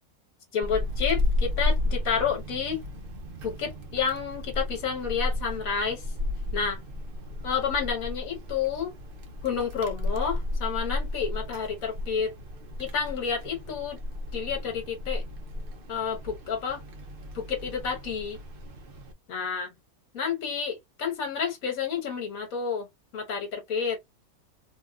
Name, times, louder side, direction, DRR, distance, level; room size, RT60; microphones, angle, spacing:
voice 1, 0.5-2.8 3.4-6.0 6.5-6.8 7.4-8.9 9.4-12.3 12.8-14.0 14.3-15.2 15.9-16.8 17.3-18.4 19.3-19.7 20.1-22.9 23.1-24.0, left 6 dB, 70° left, 1.5 m, -30 dB
Wind, 0.6-19.1, left 2 dB, 50° right, 0.7 m, -33 dB
3.5 x 2.3 x 2.2 m
omnidirectional pair, 1.6 m